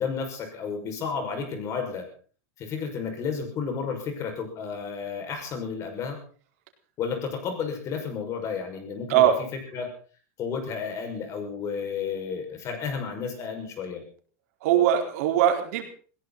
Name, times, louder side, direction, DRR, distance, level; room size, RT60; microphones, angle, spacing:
voice 1, 0.0-2.0 2.6-6.2 7.0-9.3 9.7-9.9 10.4-14.0, left 6 dB, 35° left, 5 dB, 6.0 m, -32 dB
voice 2, 14.6-15.8, right 10 dB, 70° right, 4 dB, 4.4 m, -21 dB
20.5 x 16.5 x 4.2 m, 0.41 s
supercardioid pair, 140°, 8 cm